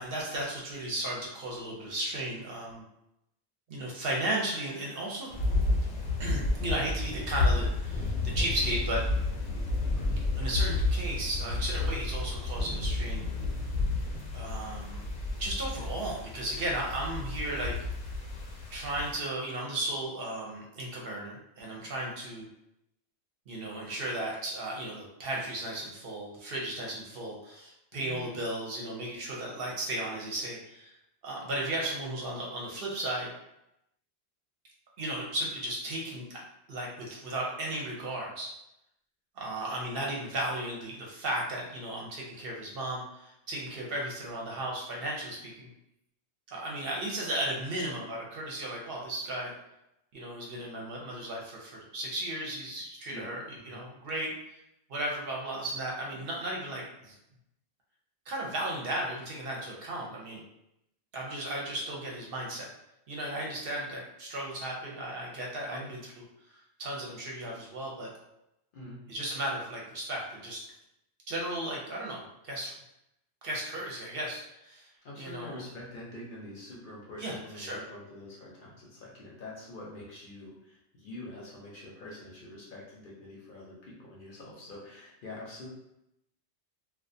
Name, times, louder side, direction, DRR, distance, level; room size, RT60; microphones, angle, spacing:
voice 1, 0.0-2.8 3.7-5.3 6.2-9.0 10.3-13.3 14.3-15.0 15.4-17.7 18.7-22.5 23.5-30.9 31.2-33.3 35.0-36.4 36.7-38.5 39.4-45.7 46.5-49.5 50.1-54.3 54.9-57.1 58.3-60.4 61.1-62.7 63.1-66.2 66.8-68.1 69.1-70.6 71.3-72.7 73.4-74.9 75.2-75.6 77.2-77.8, right 1 dB, 65° right, -3 dB, 0.7 m, -35 dB
sound 1, 5.3-19.1, left 2 dB, 85° left, 0.9 m, -31 dB
voice 2, 27.9-28.3 53.1-53.3 53.5-53.8 65.7-66.0 68.7-69.0 75.0-85.7, left 1 dB, 55° left, -4 dB, 0.7 m, -45 dB
2.3 x 2.2 x 2.5 m, 0.85 s
omnidirectional pair, 1.2 m